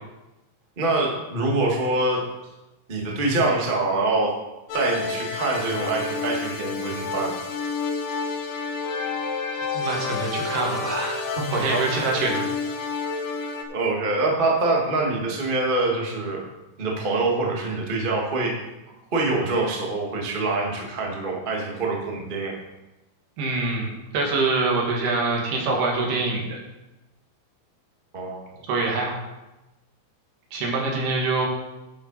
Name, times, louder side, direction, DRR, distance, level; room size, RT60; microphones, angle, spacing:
voice 1, 0.8-2.2 2.9-4.3 4.7-7.4 11.4-11.8 13.7-16.4 16.8-18.6 19.1-22.5 28.1-28.5, right 2 dB, 45° right, -1 dB, 0.6 m, -25 dB
sound 1, 4.7-13.6, left 4 dB, 70° left, 1.6 m, -29 dB
voice 2, 9.7-11.3 11.5-12.4 23.4-26.6 28.7-29.2 30.5-31.5, right 3 dB, 85° right, -1 dB, 4.0 m, -25 dB
11.5 x 8.1 x 4.1 m, 1.0 s
omnidirectional pair, 4.4 m